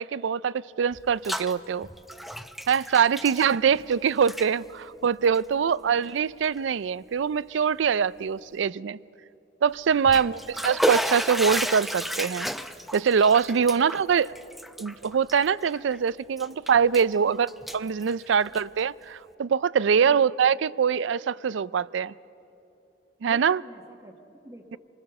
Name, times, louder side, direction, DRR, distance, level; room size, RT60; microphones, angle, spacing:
voice 1, 0.0-1.9 2.7-9.0 9.6-12.5 12.9-14.3 14.8-22.1 23.2-23.6, right 6 dB, 80° right, 20 dB, 0.4 m, -23 dB
Bathtub (filling or washing), 0.9-1.5 1.8-3.9 4.2-4.5 5.2-5.4 6.0-6.1 6.6-6.7 9.8-16.0 16.4-17.1 17.5-18.8, equal, ahead, 0.6 m, -32 dB
voice 2, 5.5-6.1 10.1-10.8 13.6-13.8 18.5-18.6 20.0-20.5 23.2-24.8, right 1 dB, 15° right, -1 dB, 1.3 m, -49 dB
27.5 x 20.5 x 6.6 m, 2.9 s
head